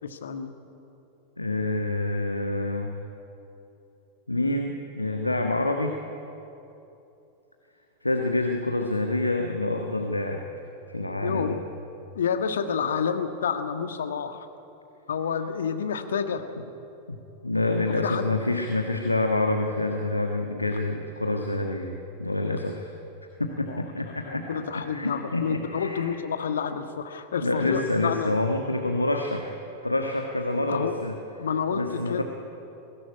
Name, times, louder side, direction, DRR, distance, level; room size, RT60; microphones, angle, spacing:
voice 1, 0.0-0.5 11.2-11.6 12.1-14.5 15.1-16.4 18.0-18.2 23.6-28.3 30.7-30.9 31.4-31.8 32.1-32.2, left 7 dB, 65° left, 7 dB, 1.5 m, -29 dB
voice 2, 1.4-2.9 4.3-6.0 8.0-10.4 10.9-11.6 17.1-17.2 17.4-22.9 23.4-26.1 27.4-29.6 29.8-31.2 31.7-32.2, left 2 dB, 85° left, 3 dB, 1.4 m, -27 dB
21.0 x 17.0 x 10.0 m, 2.9 s
figure-of-eight pair, 90°, 0 cm